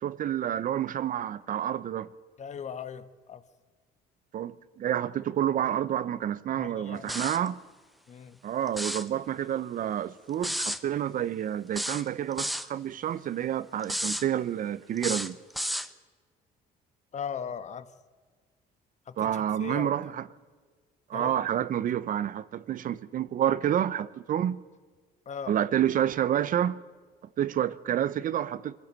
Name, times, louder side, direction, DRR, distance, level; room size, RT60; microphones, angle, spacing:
voice 1, 0.0-2.1 4.3-7.6 8.4-15.4 19.2-20.2 21.1-24.6 25.5-26.8 27.4-28.8, right 10 dB, 55° right, 0.8 m, -29 dB
voice 2, 2.4-3.4 6.5-7.2 8.1-8.4 17.1-17.9 19.1-19.9 21.1-21.4 25.3-25.6, left 7 dB, 45° left, 1.2 m, -38 dB
sound 1, 7.1-7.5 8.7-9.1 10.4-10.8 11.7-12.7 13.8-14.3 15.0-15.9, equal, ahead, 0.9 m, -32 dB
23.0 x 15.5 x 7.6 m
cardioid pair, 110°, 17 cm